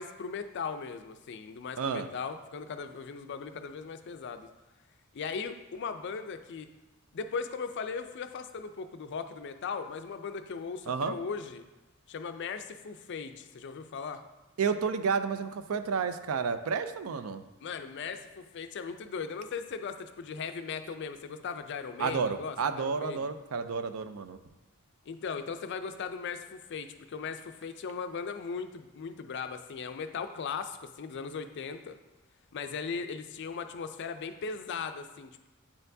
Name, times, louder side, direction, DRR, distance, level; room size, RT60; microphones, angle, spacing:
voice 1, 0.0-4.5 5.1-6.7 7.1-11.6 12.1-14.2 17.6-23.3 25.1-32.0 32.5-35.5, left 5 dB, 55° left, 9 dB, 0.4 m, -38 dB
voice 2, 1.8-2.1 10.9-11.2 14.6-17.4 22.0-24.4, right 5 dB, 85° right, 10 dB, 0.4 m, -31 dB
8.6 x 4.4 x 2.6 m, 1.0 s
head